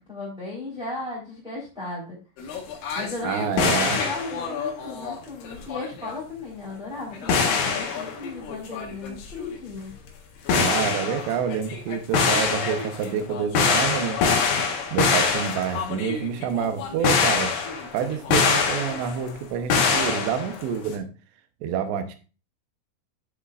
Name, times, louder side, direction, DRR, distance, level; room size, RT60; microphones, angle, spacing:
voice 1, 0.1-2.2 2.9-9.9, left 3 dB, ahead, -8 dB, 2.6 m, -35 dB
sound 1, 2.4-5.2 5.4-6.1 7.1-9.5 9.9-10.1 10.5-19.3 19.7-20.9, left 5 dB, 65° left, 2.4 m, -25 dB
voice 2, 3.2-4.0 10.5-14.2 14.9-17.5 17.9-21.1 21.6-22.2, right 8 dB, 75° right, 8 dB, 2.8 m, -28 dB
10.0 x 7.3 x 2.5 m, 0.34 s
omnidirectional pair, 5.9 m